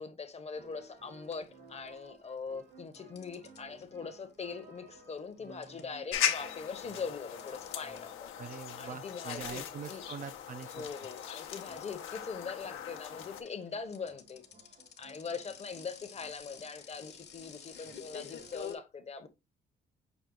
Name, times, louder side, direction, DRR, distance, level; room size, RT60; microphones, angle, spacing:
voice 1, 0.0-8.3 8.8-10.1 10.7-14.4 15.0-19.3, left 5 dB, 35° left, 0.8 m, -42 dB
sound 1, 0.5-18.7, right 4 dB, 75° right, 2.2 m, -59 dB
sound 2, 0.7-1.0 1.3-2.3 2.9-8.3 8.6-18.8, left 8 dB, 60° left, 0.9 m, -50 dB
sound 3, 6.1-13.4, left 10 dB, 90° left, 0.7 m, -38 dB
voice 2, 8.4-10.9, right 7 dB, 40° right, 0.4 m, -43 dB
5.9 x 2.3 x 3.7 m
cardioid pair, 90°, 20 cm